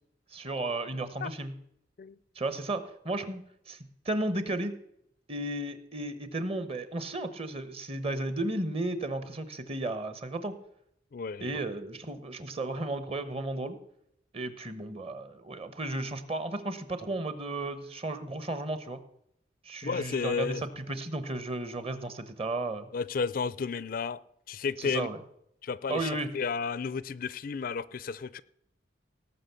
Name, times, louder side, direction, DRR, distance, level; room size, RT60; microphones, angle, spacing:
voice 1, 0.3-1.5 2.3-3.8 4.0-4.7 5.3-10.5 11.4-13.8 14.3-19.0 19.6-22.9 24.8-25.2 25.9-26.3, right 2 dB, 30° right, 1.1 m, -34 dB
voice 2, 11.1-11.6 19.8-20.6 22.9-24.2 24.5-25.1 25.6-28.4, left 5 dB, 50° left, 0.4 m, -32 dB
18.0 x 6.1 x 6.9 m
head